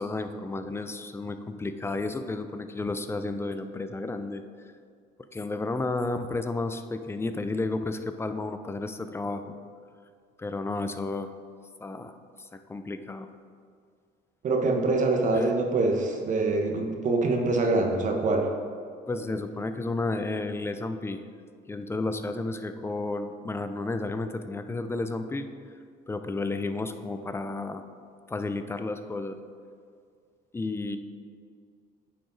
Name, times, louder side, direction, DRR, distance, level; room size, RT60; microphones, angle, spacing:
voice 1, 0.0-4.4 5.3-9.5 10.4-11.3 11.8-13.3 15.3-15.5 19.1-21.2 21.7-25.5 26.1-27.9 28.3-29.4 30.5-31.0, left 3 dB, 15° left, 9 dB, 0.4 m, -32 dB
voice 2, 14.4-18.5, right 3 dB, 50° right, 3 dB, 1.1 m, -24 dB
8.9 x 4.9 x 3.9 m, 2.2 s
cardioid pair, 110°, 17 cm